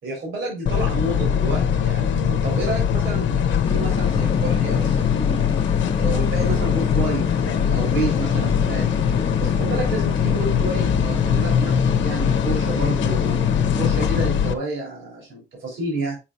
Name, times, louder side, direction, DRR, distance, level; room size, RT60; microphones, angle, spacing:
voice 1, 0.0-5.5 6.0-8.9 9.4-13.4 13.7-16.2, right 2 dB, 75° right, -1 dB, 3.8 m, -30 dB
sound 1, 0.7-14.5, left 8 dB, 70° left, 0.9 m, -21 dB
sound 2, 3.6-14.3, left 4 dB, 25° left, 0.9 m, -29 dB
7.3 x 4.9 x 2.8 m, 0.26 s
cardioid pair, 90°, 20 cm